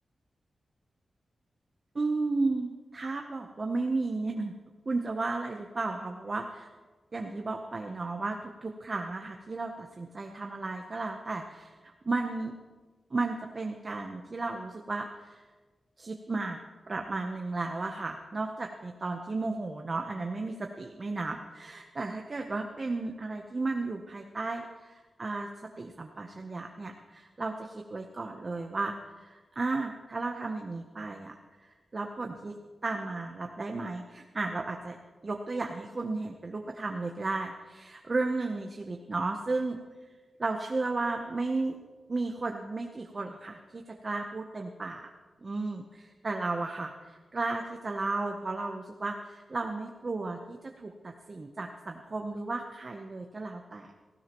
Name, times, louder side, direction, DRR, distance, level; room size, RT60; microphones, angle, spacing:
voice 1, 1.9-4.5 4.9-6.7 7.1-12.5 13.1-15.4 16.0-16.6 16.9-31.3 31.6-32.5 32.8-35.0 35.2-39.8 40.4-41.8 42.1-45.1 45.4-53.9, right 3 dB, 35° right, 3 dB, 0.8 m, -34 dB
17.5 x 16.0 x 3.0 m, 1.3 s
wide cardioid pair, 135°, 0 cm